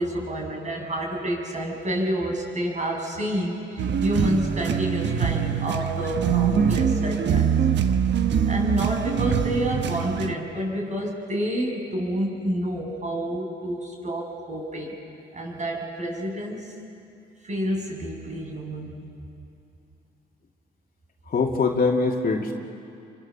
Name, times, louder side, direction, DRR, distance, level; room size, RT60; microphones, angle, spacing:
voice 1, 0.0-7.5 8.5-14.9 15.3-16.8 17.4-19.0, right 1 dB, 35° right, 0 dB, 6.9 m, -29 dB
sound 1, 3.8-10.3, right 7 dB, 65° right, 1.2 m, -23 dB
voice 2, 21.3-22.5, left 4 dB, 45° left, 1 dB, 2.6 m, -23 dB
29.5 x 24.5 x 7.2 m, 2.5 s
cardioid pair, 90°, 20 cm